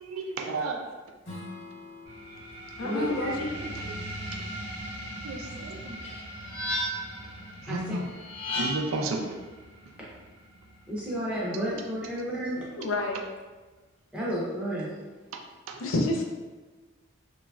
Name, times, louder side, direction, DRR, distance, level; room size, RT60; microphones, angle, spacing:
voice 1, 0.0-0.8 3.0-4.0 5.2-6.0 7.6-8.1 8.5-9.4 13.0-13.1 15.7-15.8, right 3 dB, 90° right, 3 dB, 0.4 m, -33 dB
Strum, 1.2-6.4, left 2 dB, 60° left, 1.0 m, -49 dB
sound 1, 2.1-13.1, equal, 60° right, 0.8 m, -42 dB
voice 2, 2.8-3.5 12.8-13.2 15.8-16.2, left 2 dB, 80° left, 2 dB, 0.4 m, -28 dB
sound 2, 6.0-7.2 8.2-9.0, left 1 dB, 30° left, 0.6 m, -32 dB
voice 3, 10.9-12.6 14.1-14.9, equal, 5° right, -8 dB, 0.6 m, -31 dB
3.0 x 2.3 x 2.3 m, 1.2 s
head